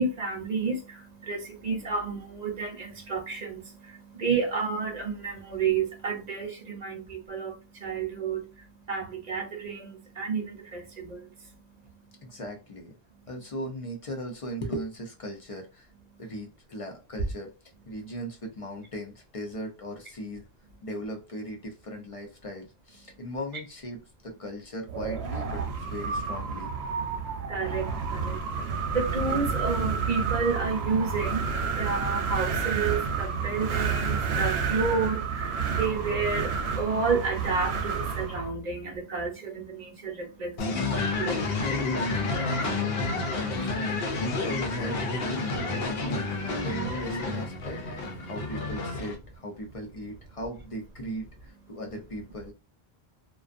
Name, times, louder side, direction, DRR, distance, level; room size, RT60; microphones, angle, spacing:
voice 1, 0.0-8.4 8.9-11.2 27.5-28.4 28.9-40.8 41.2-41.8, right 4 dB, 45° right, 0.7 m, -31 dB
voice 2, 12.2-12.9 13.3-15.9 16.2-17.5 17.9-20.5 20.8-25.6 25.9-26.7 42.5-45.0 45.5-47.8 48.2-52.5, equal, 40° left, 0.5 m, -38 dB
Wind, 24.9-38.5, right 5 dB, 90° right, 0.8 m, -30 dB
sound 1, 40.6-49.1, left 3 dB, 70° left, 0.9 m, -29 dB
2.4 x 2.3 x 2.4 m
omnidirectional pair, 1.1 m